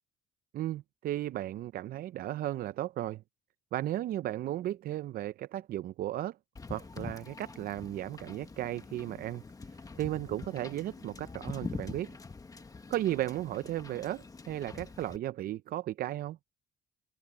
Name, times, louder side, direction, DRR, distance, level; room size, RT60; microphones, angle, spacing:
voice 1, 0.5-3.2 3.7-6.4 6.7-9.4 9.7-12.2 12.9-16.4, right 14 dB, 60° right, 0.6 m, -35 dB
Wind / Boat Water vehicle, 6.6-15.2, left 4 dB, 20° left, 1.4 m, -45 dB
open air
cardioid pair, 110°, 17 cm